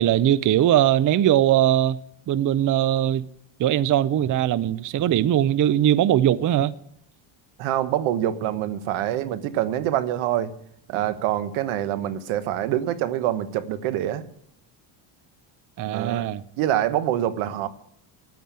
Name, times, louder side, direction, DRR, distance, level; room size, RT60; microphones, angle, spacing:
voice 1, 0.0-2.0 2.3-3.3 3.6-6.7 15.8-16.4, right 11 dB, 40° right, 0.6 m, -20 dB
voice 2, 7.6-10.5 10.9-14.2 15.9-16.3 16.6-17.7, right 12 dB, 85° right, 1.2 m, -25 dB
10.5 x 9.4 x 8.6 m
cardioid pair, 105°, 48 cm